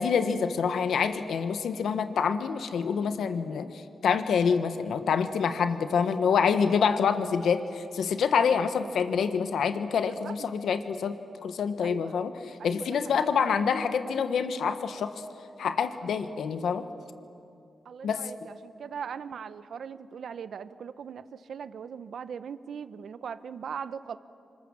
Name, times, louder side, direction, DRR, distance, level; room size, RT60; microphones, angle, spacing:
voice 1, 0.0-15.2 15.6-16.9 18.0-18.3, left 6 dB, 90° left, 9 dB, 1.2 m, -27 dB
voice 2, 10.0-10.5 11.8-12.1 12.6-13.3 17.8-24.2, right 7 dB, 75° right, 14 dB, 0.8 m, -40 dB
28.5 x 25.5 x 7.3 m, 2.6 s
cardioid pair, 75°, 0 cm